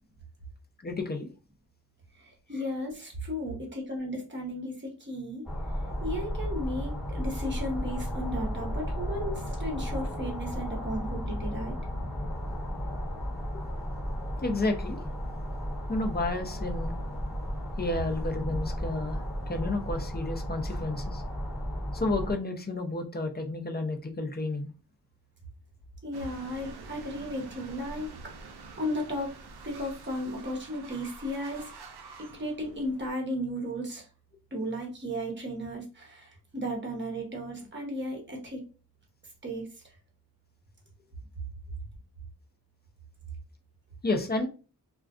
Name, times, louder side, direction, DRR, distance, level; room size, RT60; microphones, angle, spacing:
voice 1, 0.8-1.3 14.4-15.0 15.9-16.9 17.8-19.2 19.5-21.2 21.9-24.7 44.0-44.5, left 2 dB, 25° left, 0.5 m, -31 dB
voice 2, 2.2-5.4 6.0-11.8 26.0-28.1 28.4-29.3 29.6-31.7 32.3-34.0 34.5-38.6 39.4-39.7, equal, 30° right, 0.9 m, -35 dB
sound 1, 5.5-22.3, equal, ahead, 1.1 m, -34 dB
sound 2, 26.1-33.1, right 3 dB, 75° right, 0.5 m, -47 dB
2.3 x 2.2 x 2.4 m
cardioid pair, 45°, 39 cm